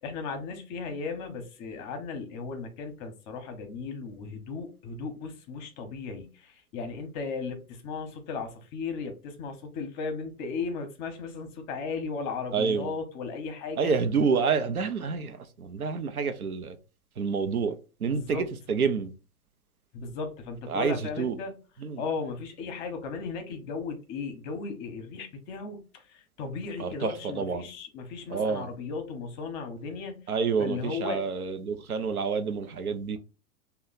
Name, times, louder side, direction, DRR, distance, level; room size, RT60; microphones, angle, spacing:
voice 1, 0.0-13.9 18.0-18.5 19.9-21.6 22.0-30.2 30.6-31.3, left 4 dB, 30° left, 0.7 m, -36 dB
voice 2, 12.5-12.9 13.8-16.8 17.2-19.1 20.7-21.4 21.8-22.0 26.8-27.7 28.3-28.7 30.3-33.2, right 5 dB, 80° right, 0.6 m, -28 dB
3.1 x 2.2 x 3.8 m
figure-of-eight pair, 100°, 44 cm